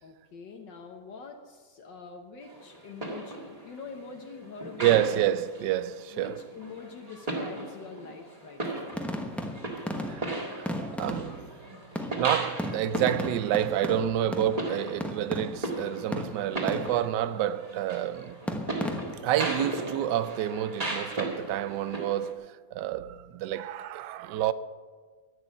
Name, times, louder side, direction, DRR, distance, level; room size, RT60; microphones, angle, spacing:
voice 1, 0.0-5.0 6.1-8.9, left 4 dB, 70° left, 1.7 m, -45 dB
sound 1, 2.4-22.3, right 2 dB, 20° right, 1.9 m, -37 dB
voice 2, 4.8-6.3 10.1-11.5 12.2-18.4 19.2-24.5, right 11 dB, 75° right, 1.2 m, -29 dB
sound 2, 8.9-11.6 12.0-15.8 16.1-17.2 18.5-19.4, equal, ahead, 0.5 m, -35 dB
11.0 x 9.7 x 7.8 m
omnidirectional pair, 2.0 m